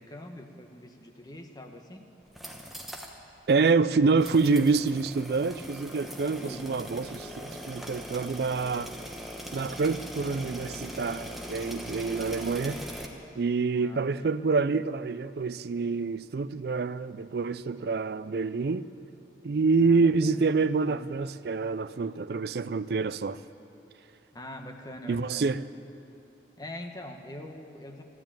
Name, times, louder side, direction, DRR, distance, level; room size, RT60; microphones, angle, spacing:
voice 1, 0.0-2.1 6.4-6.8 13.7-14.3 19.8-20.4 24.3-25.5 26.6-28.0, left 1 dB, 20° left, 1.1 m, -43 dB
sound 1, 2.2-3.2 3.5-3.6 4.2-13.1, equal, ahead, 1.0 m, -40 dB
voice 2, 3.5-8.9 9.5-12.8 13.4-18.9 19.4-23.4 25.1-25.7, right 4 dB, 60° right, 0.4 m, -27 dB
12.5 x 12.5 x 8.8 m
head